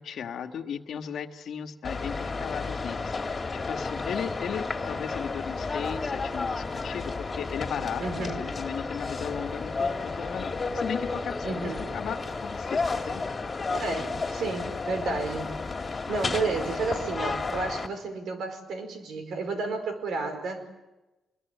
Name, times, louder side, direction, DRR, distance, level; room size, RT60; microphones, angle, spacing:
voice 1, 0.0-11.5 11.9-13.2 13.9-14.0, left 7 dB, 65° left, 5 dB, 1.7 m, -36 dB
sound 1, 1.8-17.9, left 4 dB, 30° left, 2.5 m, -32 dB
voice 2, 8.0-8.4 11.4-12.0 13.7-15.5 15.8-20.7, right 3 dB, 70° right, 7 dB, 4.8 m, -32 dB
26.0 x 22.0 x 9.3 m, 1.1 s
cardioid pair, 100°, 0 cm